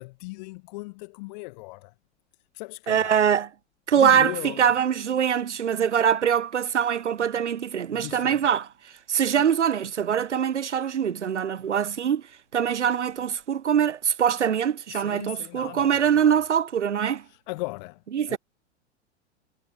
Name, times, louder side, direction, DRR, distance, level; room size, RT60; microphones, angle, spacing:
voice 1, 0.0-1.9 2.5-3.2 3.9-4.7 7.9-8.5 14.9-16.4 17.3-18.0 18.3-18.4, left 25 dB, 40° left, 1.0 m, -38 dB
voice 2, 2.9-3.5 3.9-8.7 9.1-12.2 12.5-17.2 18.1-18.4, right 8 dB, 80° right, 0.5 m, -23 dB
figure-of-eight pair, 95°, 35 cm